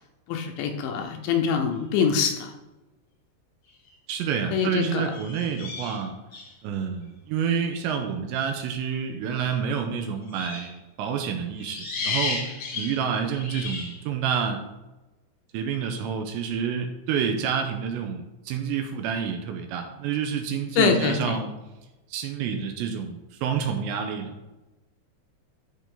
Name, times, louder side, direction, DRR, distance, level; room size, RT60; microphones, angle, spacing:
voice 1, 0.3-2.5 4.5-5.1 20.8-21.4, left 6 dB, 80° left, 4 dB, 2.8 m, -24 dB
sound 1, 3.7-3.9 5.1-6.5 10.3-10.8 11.6-14.0, left 4 dB, 55° left, 1.8 m, -33 dB
voice 2, 4.1-6.2 6.6-12.4 12.7-14.6 15.5-21.5 22.1-24.3, right 7 dB, 80° right, 4 dB, 2.8 m, -28 dB
13.0 x 5.2 x 3.8 m, 1.1 s
omnidirectional pair, 5.6 m